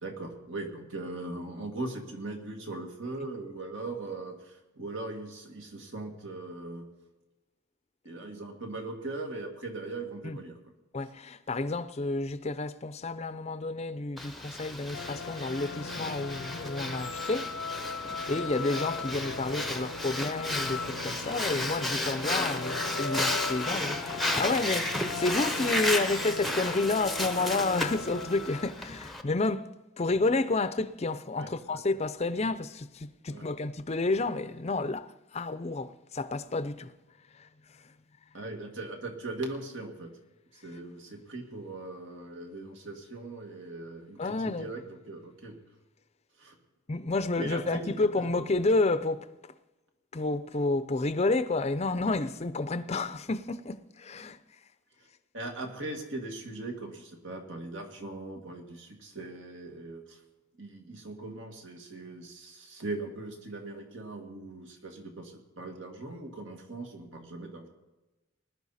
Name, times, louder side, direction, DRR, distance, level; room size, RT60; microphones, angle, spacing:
voice 1, 0.0-6.9 8.0-10.6 18.2-18.3 31.3-31.8 33.3-33.4 38.3-40.1 40.5-45.6 46.4-46.6 47.4-48.3 50.1-50.2 55.3-60.2 60.6-67.7, right 2 dB, 70° right, 2.1 m, -40 dB
voice 2, 10.9-17.5 18.0-29.7 30.0-36.9 37.4-37.5 44.2-44.7 46.9-49.3 50.1-54.4, left 3 dB, 35° left, 0.6 m, -30 dB
Breathing, 14.2-29.2, left 1 dB, ahead, 0.8 m, -34 dB
sound 1, 14.9-28.8, left 4 dB, 85° left, 0.8 m, -38 dB
19.5 x 11.5 x 4.2 m
head